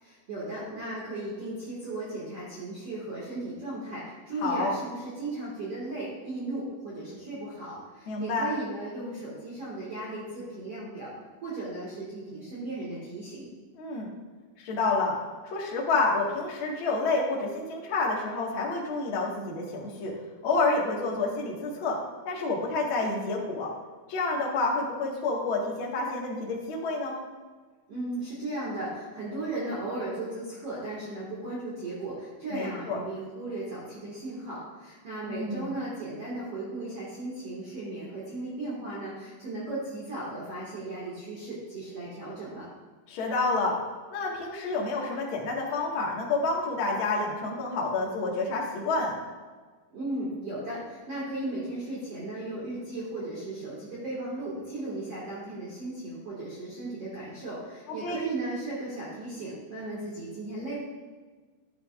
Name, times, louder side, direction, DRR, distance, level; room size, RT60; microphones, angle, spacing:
voice 1, 0.0-11.1 11.4-13.5 27.9-42.7 49.9-60.8, right 2 dB, 45° right, -7 dB, 2.2 m, -36 dB
voice 2, 4.4-4.7 8.1-8.5 13.8-14.1 14.6-15.2 15.4-20.1 20.4-22.0 22.2-23.7 24.1-27.2 32.5-33.0 35.3-35.7 43.1-43.7 44.1-49.2 58.0-58.2, left 3 dB, 50° left, -3 dB, 1.5 m, -29 dB
12.5 x 8.6 x 2.5 m, 1.4 s
omnidirectional pair, 4.7 m